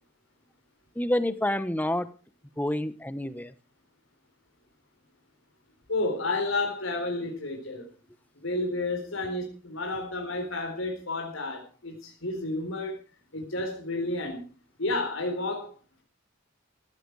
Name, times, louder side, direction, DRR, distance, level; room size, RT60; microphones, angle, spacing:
voice 1, 0.9-2.1 2.6-3.5, left 1 dB, 10° left, 14 dB, 1.0 m, -28 dB
voice 2, 5.9-7.9 8.4-13.0 13.3-14.4 14.8-15.7, left 2 dB, 75° left, 2 dB, 4.3 m, -31 dB
16.0 x 15.0 x 4.8 m, 0.36 s
head